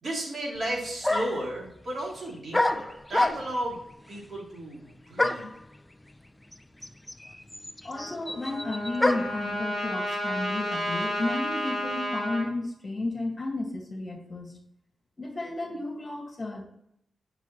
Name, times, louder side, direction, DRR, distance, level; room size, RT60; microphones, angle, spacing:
voice 1, 0.0-3.8 4.1-5.5, right 1 dB, 55° right, -4 dB, 2.9 m, -34 dB
sound 1, 0.6-0.7 1.0-1.5 2.5-3.7 5.2-5.6 6.5-6.6 6.8-9.4, left 2 dB, 15° left, 0.5 m, -27 dB
voice 2, 7.8-14.6 15.2-16.6, left 2 dB, 35° left, 1 dB, 1.8 m, -33 dB
Trumpet, 7.9-12.5, equal, 40° right, 2.9 m, -32 dB
8.9 x 6.0 x 3.0 m, 0.74 s
cardioid pair, 70°, 0 cm